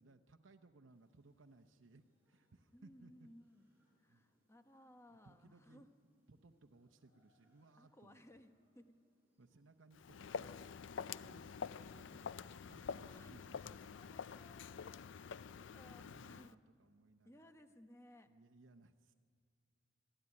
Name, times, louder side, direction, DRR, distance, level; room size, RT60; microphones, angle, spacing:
voice 1, 0.0-3.3 4.1-4.3 5.1-5.9 6.3-8.2 9.4-14.0 16.0-17.5 18.3-19.1, right 3 dB, 70° right, 5 dB, 0.9 m, -65 dB
sound 1, 0.9-14.6, equal, 10° right, 7.0 m, -80 dB
voice 2, 2.7-3.7 4.0-5.9 7.8-9.0 12.6-13.4 13.9-15.2 15.7-16.5 17.2-18.3, left 1 dB, 15° left, 7 dB, 1.2 m, -62 dB
Walk footsteps, 9.9-16.5, left 6 dB, 70° left, 0.4 m, -47 dB
26.0 x 12.5 x 9.8 m, 2.1 s
head